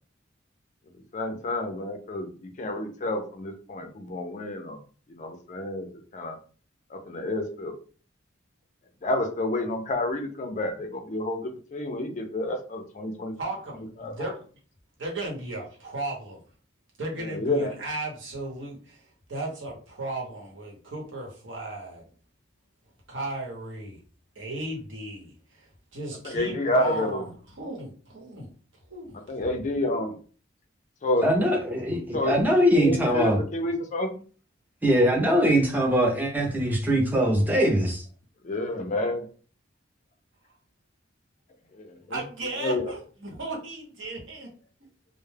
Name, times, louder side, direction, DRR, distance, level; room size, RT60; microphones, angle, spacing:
voice 1, 1.1-4.8 5.1-6.4 6.9-7.7 9.0-13.3 14.0-14.3 17.2-17.7 26.2-27.3 29.3-30.2 31.0-31.3 32.1-32.4 32.7-34.1 38.4-39.3 41.7-42.2 42.6-42.9, left 1 dB, 40° left, 0.4 m, -29 dB
voice 2, 13.4-14.4 15.0-16.4 17.0-22.0 23.1-24.0 24.3-27.3 27.5-28.5 28.9-29.2 42.1-44.5, right 2 dB, 80° right, 0.9 m, -35 dB
voice 3, 31.2-33.4 34.8-38.0, equal, 10° right, 0.6 m, -22 dB
2.2 x 2.0 x 3.2 m
head